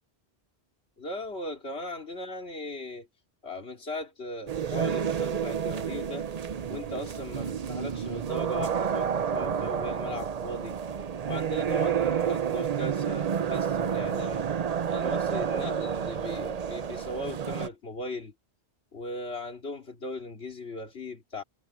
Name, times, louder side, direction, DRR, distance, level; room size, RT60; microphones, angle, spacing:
voice 1, 1.0-3.1 3.4-6.3 6.7-10.8 11.3-14.5 14.9-18.3 18.9-21.4, left 1 dB, 85° left, 2.9 m, -38 dB
sound 1, 4.5-17.7, right 8 dB, 45° right, 0.6 m, -30 dB
omnidirectional pair, 1.1 m